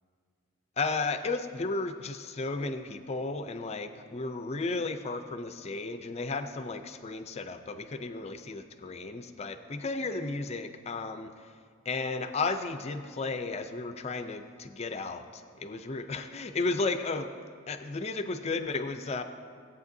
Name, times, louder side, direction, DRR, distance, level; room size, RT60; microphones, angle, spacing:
voice 1, 0.8-11.6 11.9-17.3 17.7-19.2, left 3 dB, 30° left, 9 dB, 0.4 m, -34 dB
17.0 x 8.2 x 2.7 m, 2.1 s
head